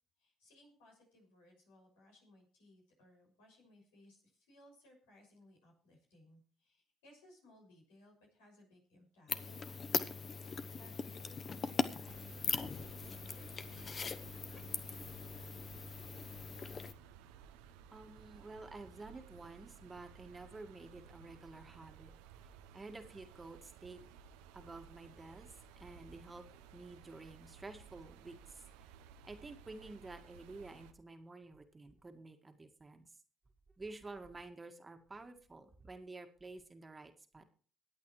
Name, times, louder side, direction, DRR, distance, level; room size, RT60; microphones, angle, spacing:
voice 1, 0.2-9.8 10.4-15.2, left 1 dB, 85° left, -1 dB, 6.7 m, -63 dB
sound 1, 9.3-16.9, left 5 dB, 45° left, 1.0 m, -40 dB
sound 2, 12.1-30.9, right 7 dB, 85° right, 0.9 m, -57 dB
voice 2, 17.9-22.1 22.7-24.0 24.5-28.6 29.2-33.1 33.8-37.4, right 3 dB, 25° right, 6 dB, 1.9 m, -51 dB
24.0 x 8.7 x 3.3 m, 0.41 s
hypercardioid pair, 60°, 0 cm